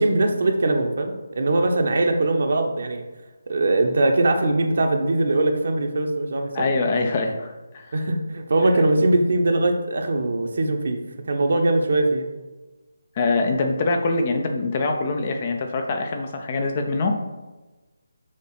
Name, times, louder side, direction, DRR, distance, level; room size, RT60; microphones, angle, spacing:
voice 1, 0.0-3.0 3.5-6.7 7.9-11.0 11.2-12.3, right 2 dB, 50° right, 4 dB, 1.0 m, -21 dB
voice 2, 6.5-7.9 13.2-17.2, left 3 dB, 30° left, 4 dB, 0.8 m, -24 dB
6.6 x 4.0 x 5.7 m, 1.2 s
figure-of-eight pair, 150°, 0 cm